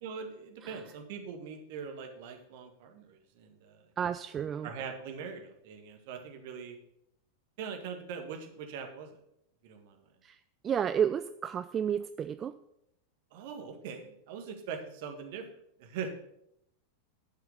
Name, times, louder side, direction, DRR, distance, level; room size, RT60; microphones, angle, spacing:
voice 1, 0.0-3.8 4.6-6.8 7.6-9.1 9.6-10.1 13.3-15.4 15.8-16.1, right 6 dB, 50° right, 4 dB, 1.8 m, -42 dB
voice 2, 4.0-4.7 10.2-10.4 10.6-12.5, right 8 dB, 25° right, 12 dB, 0.4 m, -31 dB
11.5 x 5.7 x 6.8 m, 0.77 s
figure-of-eight pair, 90°, 0 cm